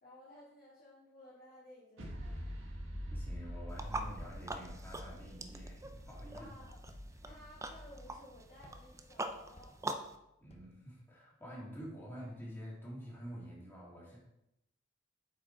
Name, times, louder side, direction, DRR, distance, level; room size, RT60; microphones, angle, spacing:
voice 1, 0.0-2.5 6.3-6.8 7.2-9.8, left 1 dB, 50° left, -11 dB, 2.4 m, -57 dB
sound 1, 2.0-9.5, equal, 85° right, 1.6 m, -46 dB
Walk footsteps, 2.3-2.8 3.3-3.8 4.2-4.7 5.1-5.6 5.9-6.3 6.8-7.2 7.7-8.2 8.6-10.1 10.5-10.9, equal, 35° left, 0.9 m, -59 dB
voice 2, 3.1-6.5 10.4-14.2, equal, 10° left, -5 dB, 2.6 m, -48 dB
sound 2, 3.7-10.2, right 2 dB, 15° right, 0.5 m, -44 dB
7.8 x 5.1 x 4.6 m, 0.87 s
head